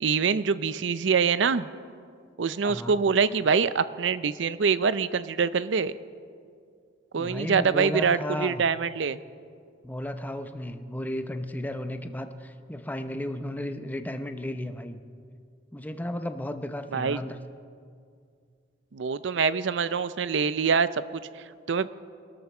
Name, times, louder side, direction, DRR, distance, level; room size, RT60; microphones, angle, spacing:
voice 1, 0.0-1.7 2.4-5.9 7.1-9.2 16.9-17.2 18.9-21.9, right 5 dB, 70° right, 15 dB, 0.5 m, -25 dB
voice 2, 2.6-3.0 7.2-8.6 9.8-15.0 15.7-17.4, left 1 dB, 10° left, 8 dB, 0.7 m, -34 dB
24.0 x 13.0 x 4.4 m, 2.3 s
head